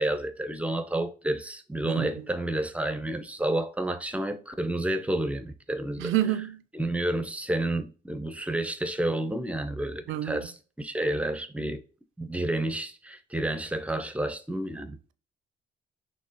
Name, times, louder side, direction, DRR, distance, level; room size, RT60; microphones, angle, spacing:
voice 1, 0.0-6.1 6.7-11.8 12.2-15.0, right 1 dB, 5° right, 0.6 m, -30 dB
voice 2, 1.8-2.2 6.0-6.6 10.1-10.5, right 13 dB, 80° right, 0.4 m, -29 dB
5.9 x 2.0 x 2.9 m
cardioid pair, 90°, 20 cm